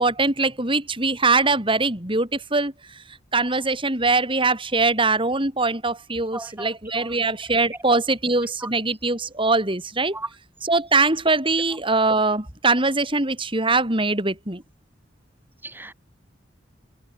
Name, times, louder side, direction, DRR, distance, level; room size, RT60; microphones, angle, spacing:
voice 1, 0.0-3.0 3.3-10.2 10.6-14.6, right 3 dB, 30° right, 5.0 m, -22 dB
voice 2, 6.3-7.2 7.4-7.8 8.6-8.7 10.1-10.3 15.6-15.9, right 2 dB, 10° right, 5.0 m, -37 dB
head